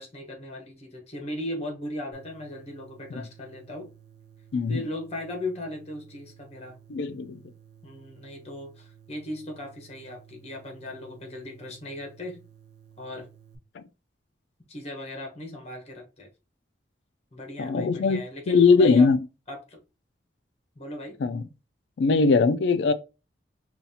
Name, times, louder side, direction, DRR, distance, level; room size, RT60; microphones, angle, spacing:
voice 1, 0.0-3.9 4.7-6.8 7.8-12.4 13.0-13.3 14.7-16.3 17.3-19.1 19.5-19.8 20.7-21.2, left 1 dB, 35° left, 1.1 m, -37 dB
sound 1, 2.1-13.6, right 8 dB, 75° right, 0.9 m, -54 dB
voice 2, 4.5-4.8 6.9-7.4 13.8-13.9 17.6-19.2 21.2-21.4 22.0-22.9, left 4 dB, 75° left, 0.3 m, -21 dB
5.5 x 2.4 x 2.8 m
head